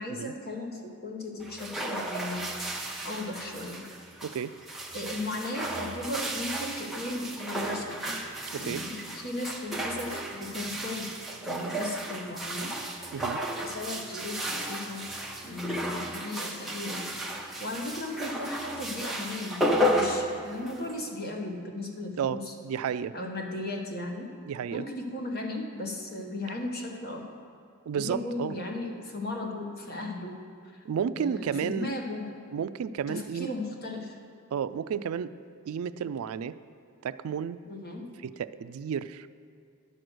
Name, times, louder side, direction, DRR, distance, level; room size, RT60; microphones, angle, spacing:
voice 1, 0.0-3.9 4.9-8.0 8.6-11.1 11.5-12.8 13.6-15.1 15.4-22.5 23.1-24.3 24.7-27.3 27.9-30.4 30.6-30.8 31.2-32.3 33.1-34.2 37.6-38.1, left 2 dB, 45° left, 2 dB, 1.2 m, -36 dB
sound 1, 1.4-21.0, equal, ahead, 0.8 m, -33 dB
voice 2, 4.2-4.5 8.5-8.8 13.1-13.4 22.2-23.2 24.5-24.8 27.9-28.5 30.8-31.9 32.5-33.5 34.5-35.3 35.7-36.6 37.0-37.6 38.2-39.4, right 7 dB, 70° right, 14 dB, 0.3 m, -32 dB
10.5 x 6.5 x 6.2 m, 2.5 s
head